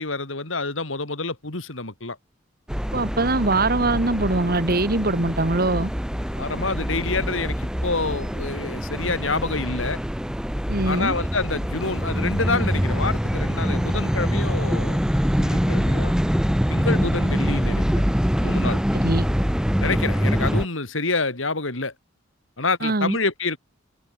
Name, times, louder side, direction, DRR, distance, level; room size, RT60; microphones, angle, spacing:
voice 1, 0.0-2.2 6.3-10.0 10.9-15.0 15.4-16.2 16.7-18.0 18.4-18.8 19.8-21.9 22.6-23.6, left 3 dB, 75° left, 3.5 m, -27 dB
sound 1, 2.7-20.7, equal, 5° right, 1.5 m, -24 dB
voice 2, 2.9-5.9 10.7-11.1 18.9-19.3 22.8-23.2, right 2 dB, 50° right, 2.1 m, -22 dB
open air
head